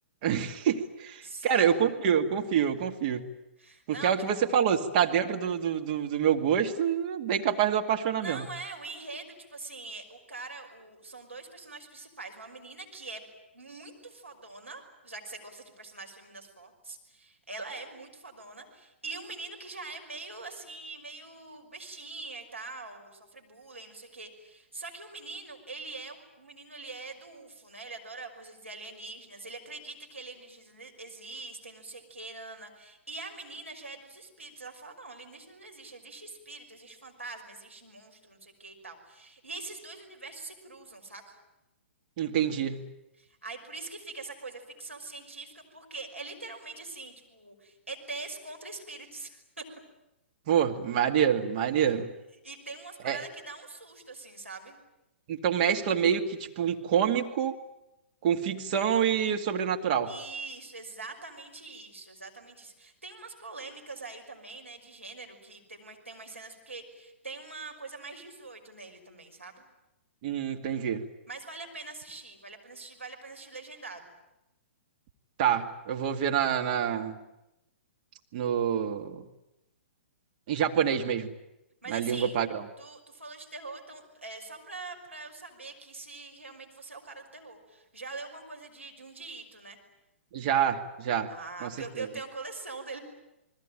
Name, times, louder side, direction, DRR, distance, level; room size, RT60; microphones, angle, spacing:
voice 1, 0.2-3.2 3.9-8.5 42.2-42.9 50.5-52.1 53.0-53.2 55.3-57.6 58.2-60.1 70.2-71.0 75.4-77.1 78.3-79.3 80.5-81.3 81.9-82.6 90.3-91.3 91.6-91.7, right 8 dB, 40° right, 4 dB, 2.3 m, -27 dB
voice 2, 1.2-1.8 3.6-4.6 8.2-13.3 13.5-41.4 43.2-49.6 51.8-52.0 52.4-54.8 60.1-69.7 71.3-74.1 81.8-82.4 82.8-89.8 91.3-93.0, right 3 dB, 85° right, 2 dB, 5.8 m, -43 dB
29.0 x 20.5 x 9.1 m, 0.92 s
figure-of-eight pair, 115°, 7 cm